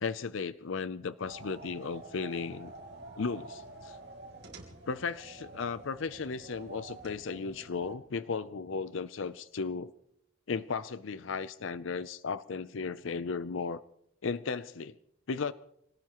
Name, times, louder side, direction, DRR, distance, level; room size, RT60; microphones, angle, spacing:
voice 1, 0.0-2.7 3.2-4.0 4.9-9.9 10.5-13.8 14.2-15.0 15.3-15.5, left 5 dB, 65° left, 0.5 m, -35 dB
sound 1, 1.2-8.0, right 2 dB, 55° right, 3.4 m, -48 dB
26.0 x 18.0 x 3.0 m
head